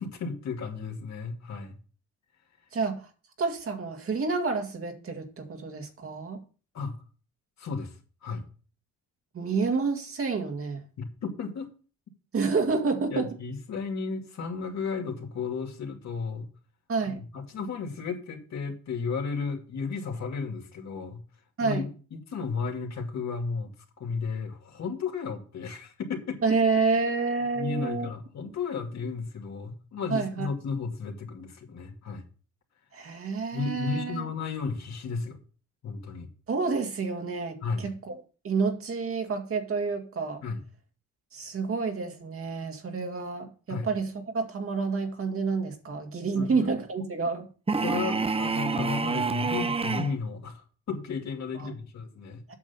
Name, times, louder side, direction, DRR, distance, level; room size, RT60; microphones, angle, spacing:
voice 1, 0.0-1.8 6.7-7.0 7.6-8.0 8.2-8.4 11.0-11.7 13.1-16.5 17.0-21.2 21.6-23.7 24.0-26.4 27.5-32.2 33.5-35.4 35.8-36.3 37.6-37.9 40.4-40.6 43.7-43.9 46.3-46.7 47.0-47.1 47.8-52.4, left 5 dB, 60° left, 2 dB, 2.6 m, -34 dB
voice 2, 2.7-3.1 3.4-6.4 9.3-10.8 12.3-13.3 16.9-17.2 21.6-21.9 26.4-28.1 30.1-30.5 32.9-34.2 36.5-38.1 38.4-40.4 41.3-47.5 51.5-51.7 52.5-52.6, right 4 dB, 45° right, 4 dB, 2.1 m, -29 dB
sound 1, 47.7-50.2, right 4 dB, 20° right, 0.7 m, -27 dB
8.5 x 6.3 x 7.0 m, 0.38 s
cardioid pair, 90°, 30 cm